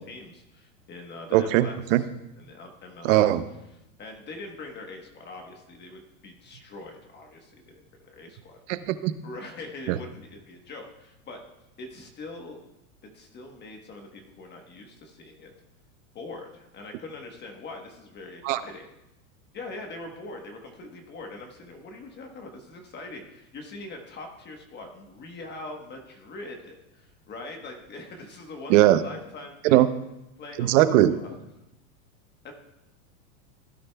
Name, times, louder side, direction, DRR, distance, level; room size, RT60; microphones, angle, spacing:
voice 1, 0.1-2.1 2.4-3.4 4.0-8.6 9.2-11.4 11.8-12.6 13.1-15.5 16.1-18.9 19.5-29.8 30.4-30.8 31.1-31.4 32.4-32.5, left 2 dB, 25° left, 3 dB, 1.2 m, -42 dB
voice 2, 1.3-2.0 3.0-3.4 8.7-9.1 9.9-10.0 18.4-18.6 28.7-29.0 29.6-29.9 30.6-31.2, right 14 dB, 60° right, 13 dB, 0.8 m, -20 dB
16.5 x 10.0 x 2.3 m, 0.91 s
supercardioid pair, 135°, 44 cm